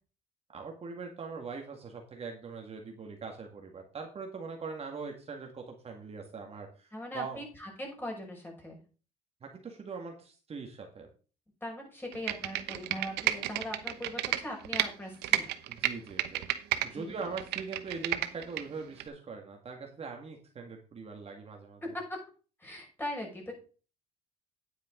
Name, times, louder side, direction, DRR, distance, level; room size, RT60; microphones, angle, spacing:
voice 1, 0.5-7.4 9.4-11.1 15.7-16.4 16.8-21.8, right 4 dB, 35° right, 2 dB, 2.0 m, -42 dB
voice 2, 6.9-8.8 11.6-15.5 16.9-17.2 21.9-22.2 22.6-23.5, left 1 dB, 10° left, -1 dB, 5.8 m, -40 dB
Computer keyboard, 12.1-14.9 15.2-16.9 17.2-18.6 19.0-19.1, right 14 dB, 85° right, 1.1 m, -31 dB
9.9 x 9.2 x 3.8 m, 0.36 s
cardioid pair, 110°, 17 cm